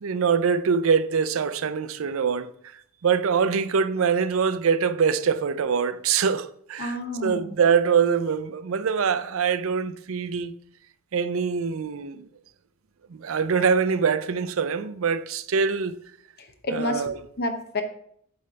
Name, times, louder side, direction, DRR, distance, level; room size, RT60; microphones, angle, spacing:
voice 1, 0.0-2.5 3.0-10.6 11.1-12.3 13.1-16.0 16.7-17.2, right 6 dB, 65° right, 0.4 m, -24 dB
voice 2, 6.8-7.5 16.4-17.8, left 1 dB, 50° left, 0.9 m, -30 dB
8.6 x 3.3 x 5.6 m
head